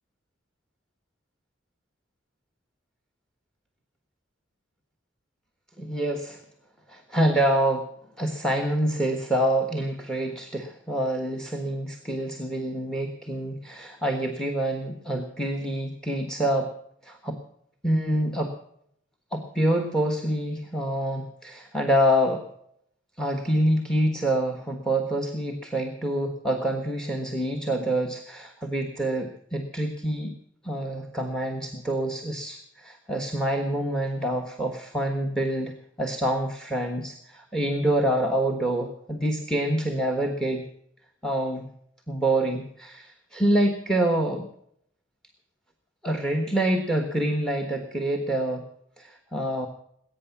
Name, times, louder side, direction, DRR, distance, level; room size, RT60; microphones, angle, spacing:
voice 1, 5.8-6.4 6.9-7.9 8.2-16.7 17.0-17.4 17.8-18.5 19.3-22.4 23.2-30.3 30.6-40.6 41.2-41.7 42.1-44.5 46.0-48.6 49.0-49.7, right 1 dB, 5° left, 6 dB, 1.3 m, -26 dB
20.5 x 9.1 x 7.2 m, 0.71 s
head